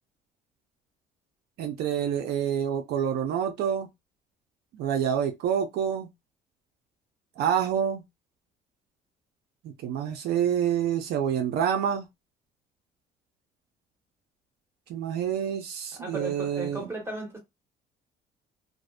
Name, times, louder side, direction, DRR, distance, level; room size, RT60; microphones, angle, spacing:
voice 1, 1.6-3.9 4.7-6.1 7.4-8.0 9.6-12.1 14.9-16.8, right 8 dB, 75° right, 0.5 m, -27 dB
voice 2, 15.9-17.4, right 1 dB, 15° right, 1.2 m, -36 dB
2.6 x 2.0 x 2.3 m
cardioid pair, 110°, 17 cm